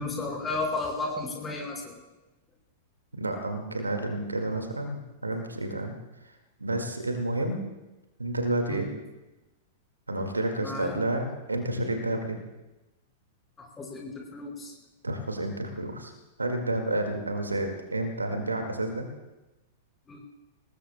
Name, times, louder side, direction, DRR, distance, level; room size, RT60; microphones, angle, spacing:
voice 1, 0.0-1.9 8.7-8.9 10.6-11.1 13.6-14.7 20.1-20.2, left 3 dB, 15° left, -1 dB, 5.0 m, -33 dB
voice 2, 3.1-5.9 6.6-7.6 8.2-8.9 10.1-12.4 15.0-16.1 16.4-19.1, right 1 dB, 80° right, 4 dB, 2.0 m, -30 dB
26.0 x 20.0 x 2.2 m, 1.0 s
figure-of-eight pair, 100°, 0 cm